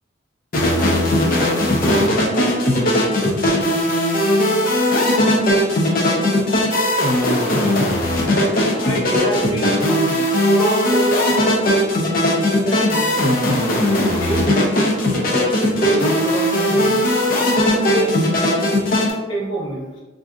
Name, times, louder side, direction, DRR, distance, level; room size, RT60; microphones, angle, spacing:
sound 1, 0.5-19.1, left 1 dB, 45° left, 0.5 m, -18 dB
voice 1, 8.5-11.6 12.3-13.5 14.2-17.0 17.6-18.3 19.3-20.0, right 1 dB, 80° left, -6 dB, 0.9 m, -27 dB
2.6 x 2.4 x 3.5 m, 1.2 s
head